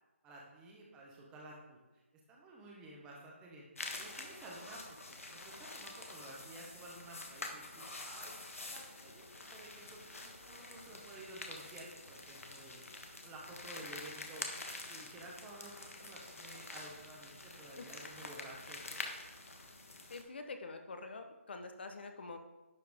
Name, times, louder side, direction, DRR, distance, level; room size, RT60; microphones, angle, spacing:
voice 1, 0.2-1.8 2.3-3.7 4.0-19.0, right 2 dB, 10° right, -2 dB, 1.1 m, -53 dB
sound 1, 3.8-20.2, left 2 dB, 90° left, 1.4 m, -47 dB
voice 2, 20.1-22.4, left 3 dB, 50° left, 6 dB, 1.0 m, -46 dB
10.5 x 4.7 x 3.6 m, 1.1 s
hypercardioid pair, 165°, 7 cm